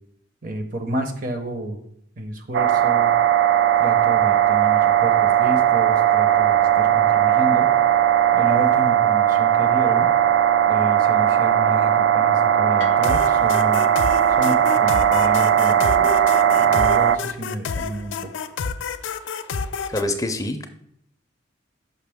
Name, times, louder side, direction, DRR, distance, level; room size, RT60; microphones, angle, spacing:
voice 1, 0.4-1.8 2.2-3.1 3.8-7.7 8.3-10.1 10.7-13.9 14.4-18.3, right 1 dB, 45° right, 6 dB, 0.8 m, -30 dB
sound 1, 2.5-17.2, right 10 dB, 75° right, 0.3 m, -18 dB
sound 2, 12.7-20.0, left 5 dB, 85° left, 0.4 m, -29 dB
voice 2, 19.9-20.7, left 1 dB, 20° left, 6 dB, 0.4 m, -25 dB
5.7 x 5.6 x 3.4 m, 0.70 s
head